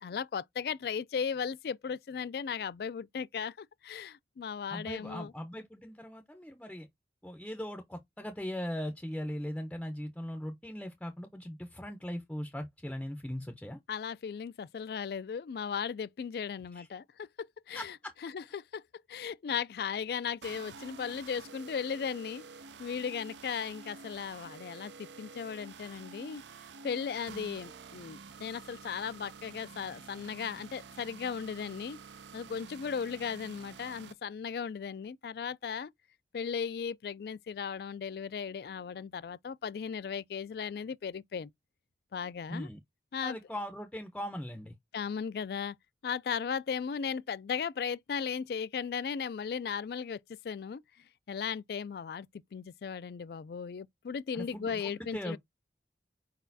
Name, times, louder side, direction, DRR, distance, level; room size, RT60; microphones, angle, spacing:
voice 1, 0.0-5.3 13.9-18.0 18.2-22.4 22.8-26.4 26.8-32.0 32.3-35.9 36.3-41.5 42.1-42.7 43.1-43.4 44.9-45.8 46.0-50.8 51.3-55.4, left 6 dB, 60° left, 0.3 m, -36 dB
voice 2, 4.7-6.9 7.2-13.8 16.7-16.9 17.7-18.1 42.5-42.8 43.2-44.7 54.3-55.4, equal, 5° left, 0.5 m, -39 dB
sound 1, 20.4-34.1, right 5 dB, 85° right, 0.6 m, -49 dB
4.8 x 4.1 x 2.7 m
head